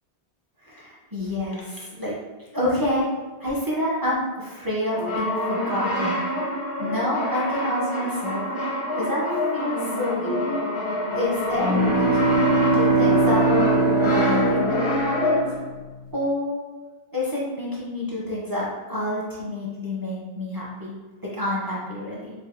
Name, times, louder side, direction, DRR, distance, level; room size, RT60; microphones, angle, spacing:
voice 1, 0.6-2.2 2.5-3.1 3.4-6.2 6.8-8.4 8.9-10.6 11.1-13.5 14.0-15.6 16.1-16.6 17.1-21.0 21.2-22.3, left 1 dB, 30° right, -7 dB, 0.4 m, -28 dB
Brass instrument, 4.9-15.7, left 1 dB, 40° left, 0.4 m, -26 dB
sound 1, 11.5-15.6, right 3 dB, 70° right, 0.8 m, -21 dB
4.9 x 2.0 x 2.3 m, 1.3 s
omnidirectional pair, 1.1 m